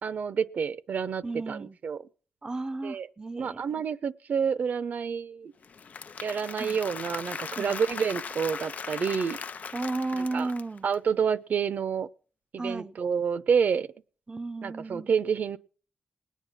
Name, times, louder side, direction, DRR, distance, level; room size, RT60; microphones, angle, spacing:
voice 1, 0.0-2.0 2.8-3.1 3.4-5.5 6.2-9.4 10.3-10.5 10.8-12.1 12.5-13.9 14.6-15.6, right 6 dB, 65° right, 0.7 m, -28 dB
voice 2, 1.2-1.8 2.4-3.8 6.6-6.8 7.6-7.8 9.7-10.9 12.6-13.0 14.3-15.1, right 3 dB, 25° right, 0.6 m, -34 dB
Applause / Crowd, 5.6-10.9, left 5 dB, 60° left, 0.6 m, -39 dB
20.0 x 9.2 x 5.8 m
cardioid pair, 90°, 3 cm